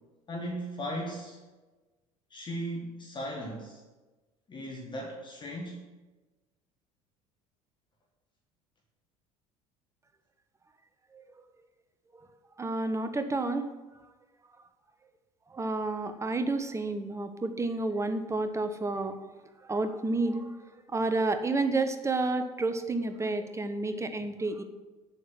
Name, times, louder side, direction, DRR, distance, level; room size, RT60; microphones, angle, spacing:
voice 1, 0.3-1.4 2.3-3.8 4.5-5.8, equal, 25° left, -1 dB, 1.6 m, -37 dB
voice 2, 12.6-13.6 15.5-19.3 19.7-20.5 20.9-24.6, right 2 dB, 15° right, 9 dB, 1.0 m, -30 dB
8.4 x 7.8 x 5.9 m, 1.2 s
figure-of-eight pair, 60°, 18 cm